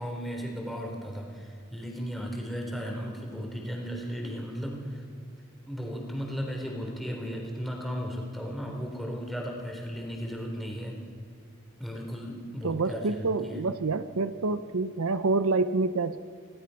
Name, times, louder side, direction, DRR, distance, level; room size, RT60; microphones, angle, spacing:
voice 1, 0.0-5.0 5.7-10.9 11.8-13.6, equal, ahead, 0 dB, 3.8 m, -35 dB
voice 2, 12.6-16.2, right 3 dB, 75° right, 12 dB, 0.7 m, -27 dB
26.0 x 17.5 x 5.8 m, 2.3 s
head